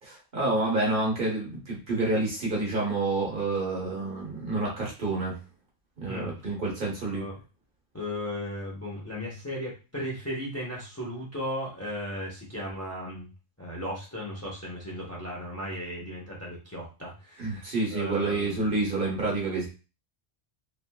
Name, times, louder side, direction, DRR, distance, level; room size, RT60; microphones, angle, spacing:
voice 1, 0.0-5.4 6.0-7.2 17.4-19.7, right 2 dB, 50° right, -3 dB, 1.1 m, -28 dB
voice 2, 6.0-6.5 7.1-7.4 7.9-13.3 13.6-18.6, left 1 dB, 15° left, -4 dB, 0.7 m, -36 dB
3.0 x 2.5 x 2.2 m, 0.32 s
omnidirectional pair, 1.1 m